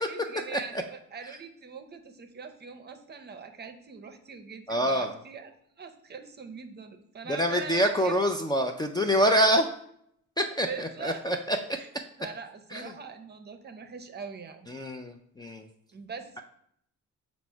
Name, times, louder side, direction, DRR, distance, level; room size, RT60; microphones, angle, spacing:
voice 1, 0.1-8.2 10.6-11.3 11.7-11.9 12.2-14.7 15.9-16.4, right 5 dB, 35° right, 7 dB, 0.6 m, -42 dB
voice 2, 4.7-5.1 7.3-9.7 10.4-11.6 12.7-12.8 14.7-15.6, equal, 15° left, 4 dB, 0.3 m, -26 dB
5.9 x 2.1 x 4.4 m, 0.71 s
cardioid pair, 90°, 30 cm